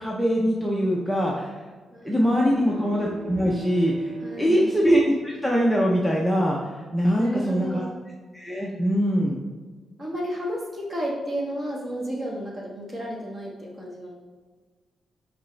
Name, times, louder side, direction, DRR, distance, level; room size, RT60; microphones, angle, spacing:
voice 1, 0.0-1.6 2.0-4.1 4.4-7.8 8.3-9.4, equal, ahead, -3 dB, 0.6 m, -23 dB
voice 2, 1.9-2.9 4.2-4.7 7.2-8.0 10.0-14.1, equal, 30° right, -3 dB, 1.5 m, -32 dB
sound 1, 2.1-6.2, right 6 dB, 90° right, 0.8 m, -41 dB
6.4 x 4.7 x 3.3 m, 1.4 s
wide cardioid pair, 155°, 0 cm